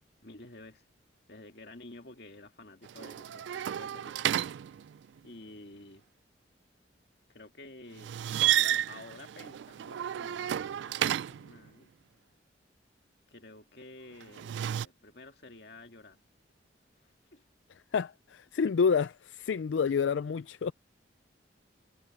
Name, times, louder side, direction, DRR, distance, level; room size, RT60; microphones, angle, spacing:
voice 1, 0.2-0.8 1.3-4.2 5.2-6.1 7.3-8.2 8.6-11.9 13.3-16.2 17.0-17.4 18.6-18.7, left 2 dB, 60° left, 2.2 m, -51 dB
sound 1, 2.8-5.2 8.0-11.6 14.2-14.9, right 11 dB, 75° right, 0.3 m, -31 dB
voice 2, 17.9-19.1 19.4-20.7, left 6 dB, 85° left, 0.4 m, -28 dB
head